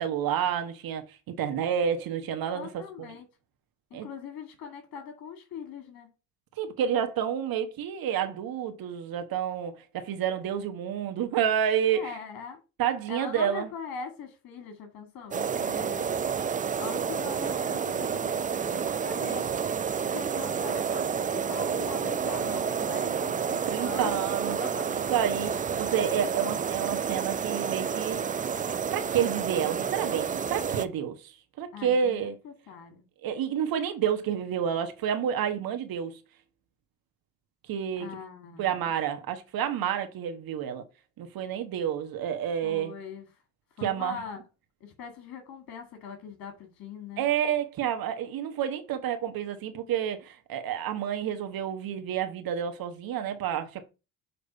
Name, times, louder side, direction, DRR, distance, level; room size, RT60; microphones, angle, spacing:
voice 1, 0.0-2.8 3.9-4.1 6.6-12.2 12.8-13.7 23.7-24.6 24.9-28.5 28.9-31.3 31.6-32.4 33.2-36.2 37.7-38.1 38.6-40.8 41.2-42.9 43.8-44.2 47.2-53.9, right 9 dB, 55° right, 1.2 m, -29 dB
voice 2, 2.5-3.3 3.9-6.1 11.9-12.6 13.1-16.1 16.8-19.5 20.1-24.2 24.6-24.9 31.7-33.0 38.0-38.8 42.6-43.3 43.8-44.4 44.8-47.3, left 6 dB, 55° left, 1.9 m, -41 dB
sound 1, 15.3-30.9, right 7 dB, 20° right, 0.5 m, -30 dB
6.8 x 3.2 x 5.5 m
hypercardioid pair, 60°, 41 cm